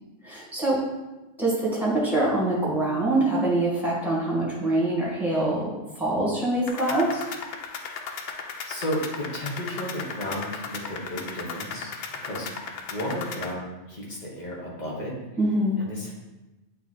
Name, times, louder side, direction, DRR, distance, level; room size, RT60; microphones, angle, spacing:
voice 1, 0.2-0.8 1.4-7.3 15.4-15.8, right 1 dB, ahead, -6 dB, 1.9 m, -24 dB
sound 1, 6.7-13.5, left 5 dB, 60° left, 0.8 m, -36 dB
voice 2, 8.7-15.1 15.8-16.1, equal, 35° left, -5 dB, 1.6 m, -33 dB
8.4 x 3.1 x 4.1 m, 1.0 s
omnidirectional pair, 1.2 m